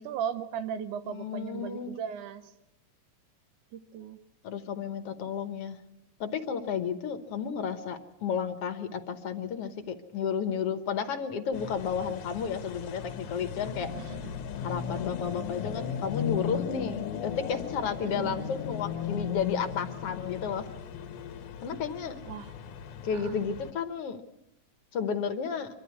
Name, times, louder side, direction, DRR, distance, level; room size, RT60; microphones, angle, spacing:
voice 1, 0.0-2.4 3.7-4.2 14.0-14.3 18.2-18.5 22.3-22.5 23.1-23.4, right 8 dB, 90° right, 11 dB, 2.5 m, -37 dB
voice 2, 1.1-1.9 4.4-5.8 6.2-13.9 14.6-20.7 21.6-22.2 23.0-24.2 24.9-25.7, left 6 dB, 60° left, 9 dB, 1.9 m, -32 dB
sound 1, 11.5-23.7, left 8 dB, 85° left, 2.6 m, -37 dB
25.0 x 12.5 x 9.5 m, 0.86 s
omnidirectional pair, 3.4 m